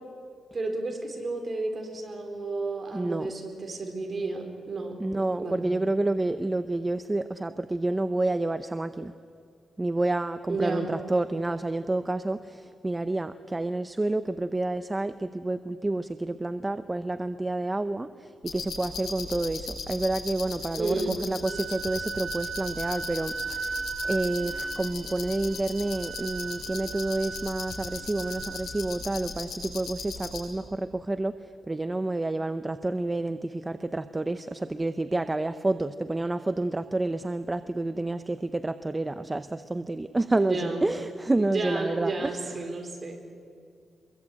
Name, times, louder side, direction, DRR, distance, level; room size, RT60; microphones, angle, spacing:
voice 1, 0.5-5.8 10.5-10.9 20.8-21.2 40.4-40.8 41.4-43.2, right 3 dB, 35° right, 2 dB, 4.5 m, -32 dB
voice 2, 2.9-3.3 5.0-9.1 9.8-42.6, right 2 dB, 15° right, 11 dB, 0.6 m, -29 dB
sound 1, 18.4-30.4, left 4 dB, 80° left, 6.7 m, -38 dB
Wind instrument woodwind instrument, 21.4-29.2, right 5 dB, 50° right, 3.3 m, -37 dB
24.5 x 22.5 x 8.7 m, 2.2 s
wide cardioid pair, 125°, 0 cm